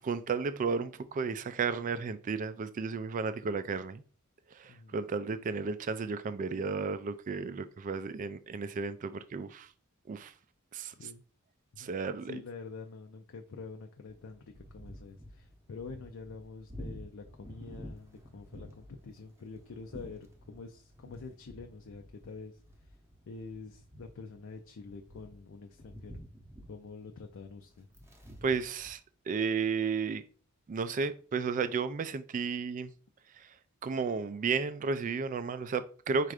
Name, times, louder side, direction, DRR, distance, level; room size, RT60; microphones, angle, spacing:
voice 1, 0.0-4.0 4.5-9.7 10.1-10.3 10.7-11.1 11.8-12.4 28.4-29.0 29.3-30.2 30.7-32.9 33.4-33.5 33.8-36.3, right 5 dB, 35° right, 0.3 m, -33 dB
voice 2, 4.7-5.0 10.9-11.2 11.7-11.9 12.2-22.6 23.3-26.2 26.7-27.9, left 4 dB, 60° left, 0.5 m, -46 dB
sound 1, 14.1-28.9, equal, 10° right, 0.7 m, -51 dB
4.3 x 2.5 x 4.8 m
head